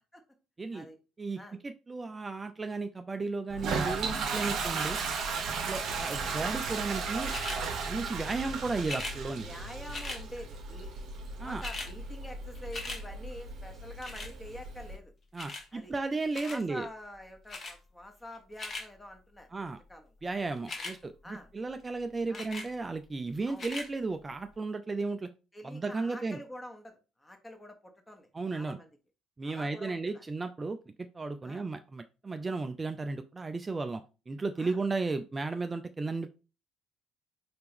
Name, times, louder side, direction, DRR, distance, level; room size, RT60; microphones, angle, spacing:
voice 1, 1.2-5.0 5.7-7.3 7.9-9.4 11.4-11.6 15.3-16.9 19.5-19.8 20.2-25.3 25.6-26.4 28.3-28.8 29.4-36.3, right 3 dB, 25° right, 8 dB, 0.3 m, -34 dB
Toilet flush, 3.5-14.9, right 4 dB, 55° right, 0.7 m, -35 dB
sound 1, 7.3-7.6 8.8-9.2 9.9-10.2 11.1-11.2 11.4-11.9 12.3-13.0 14.0-14.3 15.4-15.7 16.3-16.6 17.5-17.7 18.3-18.9 20.6-20.9 22.3-22.7 23.5-23.9 24.5-24.6, left 2 dB, 40° left, 1.0 m, -39 dB
voice 2, 9.4-10.9 11.3-15.1 15.7-15.9 16.4-20.1 20.8-20.9 21.2-21.5 22.3-22.5 23.5-23.7 25.5-28.9 29.4-30.2 31.4-31.6 34.6-34.8, left 1 dB, 15° left, 5 dB, 1.0 m, -47 dB
4.4 x 2.9 x 3.5 m, 0.32 s
figure-of-eight pair, 50°, 0 cm